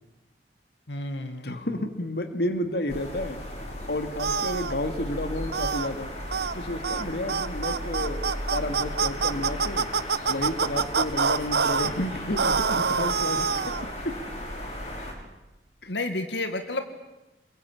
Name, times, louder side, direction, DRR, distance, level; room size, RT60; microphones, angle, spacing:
voice 1, 0.9-1.5 15.9-16.8, left 2 dB, 80° left, 7 dB, 1.9 m, -30 dB
voice 2, 1.4-3.5 3.9-6.2 6.5-9.9 10.3-14.2 15.8-15.9, left 1 dB, 60° left, 8 dB, 2.2 m, -31 dB
sound 1, 2.9-15.1, equal, 40° left, 6.3 m, -35 dB
sound 2, 4.2-4.7 5.5-5.9 6.3-6.5 6.8-7.0 7.3-11.9 12.4-13.8, right 5 dB, 65° right, 0.9 m, -26 dB
27.5 x 23.0 x 8.7 m, 0.99 s
head